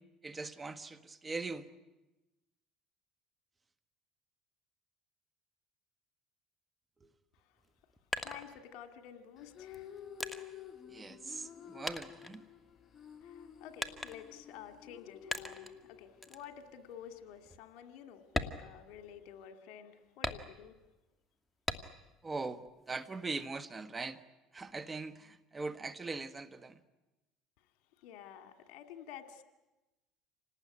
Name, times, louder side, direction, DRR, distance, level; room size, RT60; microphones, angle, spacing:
voice 1, 0.2-1.7 7.0-7.1 10.9-12.4 22.2-24.2 24.5-26.8, right 3 dB, 20° right, 11 dB, 1.4 m, -41 dB
sound 1, 7.6-9.1 9.7-11.6 11.9-13.0 13.8-14.5 15.3-15.8 16.2-16.5 16.9-17.0 17.5-17.6 18.2-19.4 20.2-20.9 21.7-22.2 22.6-23.5, left 1 dB, 5° left, 1.7 m, -40 dB
voice 2, 8.2-10.0 13.2-20.8 28.0-29.4, left 9 dB, 75° left, 8 dB, 2.2 m, -51 dB
sound 2, 9.4-17.6, left 9 dB, 35° left, 2.2 m, -52 dB
27.5 x 19.0 x 9.7 m, 1.1 s
supercardioid pair, 90°, 0 cm